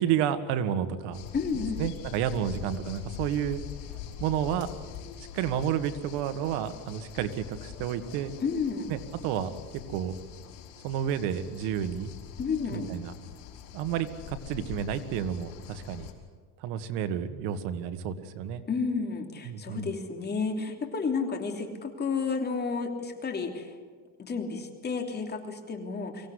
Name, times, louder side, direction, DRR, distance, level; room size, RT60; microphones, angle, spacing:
voice 1, 0.0-1.3 1.8-3.6 4.2-4.7 5.3-8.3 8.9-9.5 9.9-10.2 10.8-12.1 12.7-13.1 13.7-16.1 16.6-18.6 19.4-19.9, right 9 dB, 75° right, 10 dB, 1.9 m, -30 dB
sound 1, 1.1-16.1, left 9 dB, 80° left, 5.4 m, -44 dB
voice 2, 1.3-1.9 8.4-8.9 12.4-12.9 18.7-23.7 24.2-26.3, left 5 dB, 25° left, 4 dB, 3.1 m, -31 dB
24.5 x 17.0 x 9.9 m, 1.5 s
cardioid pair, 140°, 41 cm